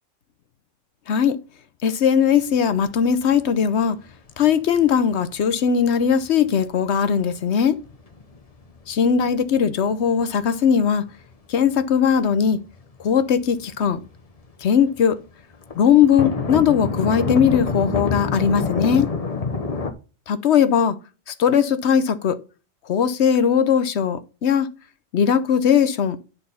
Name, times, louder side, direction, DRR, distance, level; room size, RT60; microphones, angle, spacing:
voice 1, 1.1-1.4 1.8-4.0 4.4-7.8 8.9-11.0 11.5-12.6 13.0-14.0 14.6-15.2 15.8-19.1 20.3-21.0 21.3-22.4 22.9-24.7 25.1-26.2, left 7 dB, 65° left, 1.0 m, -19 dB
sound 1, 2.8-3.0 3.3-3.4 3.8-3.9 4.5-4.8 5.2-5.3 5.9-6.7 7.2-7.3 7.8-9.8 10.2-10.6 11.1-11.2 11.7-11.8 12.0-13.6 13.9-14.1 14.4-14.5 14.8-14.9 15.1-15.2 15.6-19.9, left 4 dB, 30° left, 1.0 m, -27 dB
10.5 x 4.1 x 5.4 m
omnidirectional pair, 1.3 m